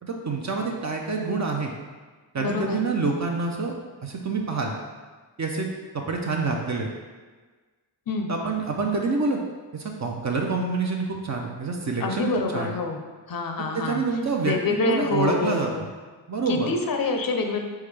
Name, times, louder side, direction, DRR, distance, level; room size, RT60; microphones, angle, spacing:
voice 1, 0.0-1.7 2.3-3.7 4.0-4.7 5.4-6.9 8.3-9.4 9.7-12.8 13.7-14.5 14.9-15.7 16.3-16.7, right 4 dB, 40° right, 1 dB, 0.6 m, -27 dB
voice 2, 2.4-2.8 8.1-8.3 12.0-13.0 13.3-14.0 14.4-15.9 16.5-17.6, left 3 dB, 50° left, 4 dB, 0.6 m, -26 dB
4.3 x 3.6 x 3.3 m, 1.4 s
cardioid pair, 75°, 44 cm